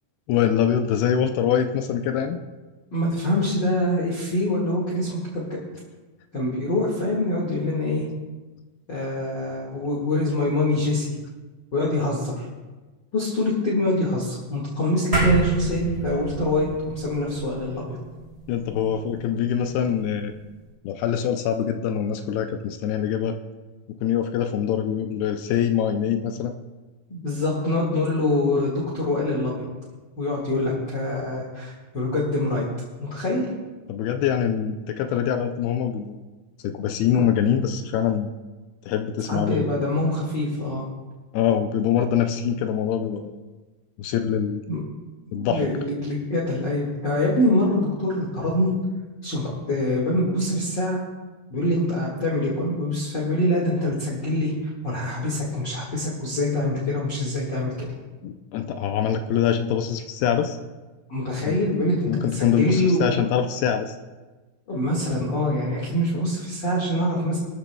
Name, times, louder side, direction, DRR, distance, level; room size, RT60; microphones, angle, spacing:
voice 1, 0.3-2.4 18.5-20.3 20.8-23.4 24.0-26.5 33.9-36.2 36.6-38.3 38.9-39.7 41.3-43.3 44.0-44.6 45.3-45.7 58.2-60.6 61.5-61.6 62.1-64.0, left 9 dB, 80° left, 7 dB, 2.3 m, -24 dB
voice 2, 2.9-5.6 6.3-8.0 8.9-11.1 11.7-12.4 13.1-18.0 27.1-29.7 30.2-32.6 33.0-33.5 39.3-40.9 44.7-44.8 45.3-48.7 49.2-51.0 51.5-57.9 61.1-63.2 64.7-67.4, left 1 dB, 50° left, -4 dB, 1.3 m, -25 dB
sound 1, 15.1-19.7, right 2 dB, 15° right, 3.7 m, -27 dB
20.5 x 13.0 x 2.3 m, 1.2 s
omnidirectional pair, 5.1 m